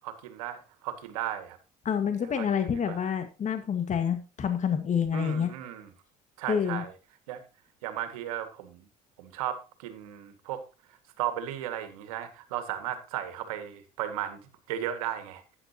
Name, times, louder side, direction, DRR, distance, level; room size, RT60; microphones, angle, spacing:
voice 1, 0.0-1.6 2.2-3.1 5.1-5.9 6.4-6.9 7.3-7.4 7.8-8.9 9.2-10.6 11.2-14.4 14.7-15.4, right 11 dB, 90° right, 9 dB, 1.9 m, -35 dB
voice 2, 1.9-5.5 6.5-6.8, left 7 dB, 45° left, 8 dB, 1.7 m, -28 dB
11.5 x 9.8 x 2.9 m, 0.30 s
supercardioid pair, 75°, 18 cm